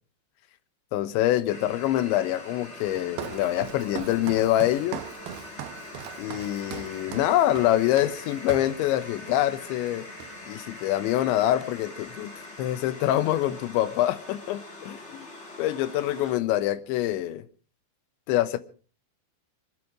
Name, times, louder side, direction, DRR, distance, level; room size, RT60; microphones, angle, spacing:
voice 1, 0.9-5.0 6.2-10.1 10.5-12.3 12.6-15.3 15.6-17.5 18.3-18.6, left 13 dB, 90° left, 3.3 m, -25 dB
sound 1, 1.5-16.4, left 2 dB, 40° left, 1.0 m, -43 dB
Walk footsteps, 2.8-8.8 9.3-9.5 9.8-10.6, right 10 dB, 75° right, 2.4 m, -40 dB
26.0 x 10.5 x 4.8 m
omnidirectional pair, 5.2 m